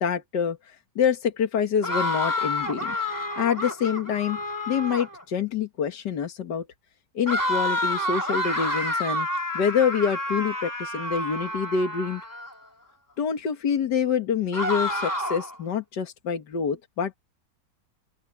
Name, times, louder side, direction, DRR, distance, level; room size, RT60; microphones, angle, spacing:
voice 1, 0.0-3.0 3.4-4.4 4.7-6.7 7.2-9.3 9.5-12.2 13.2-17.2, left 7 dB, 80° left, 2.2 m, -26 dB
sound 1, 1.8-5.2 7.3-12.5 14.5-15.6, left 1 dB, 10° left, 3.6 m, -29 dB
open air
omnidirectional pair, 1.8 m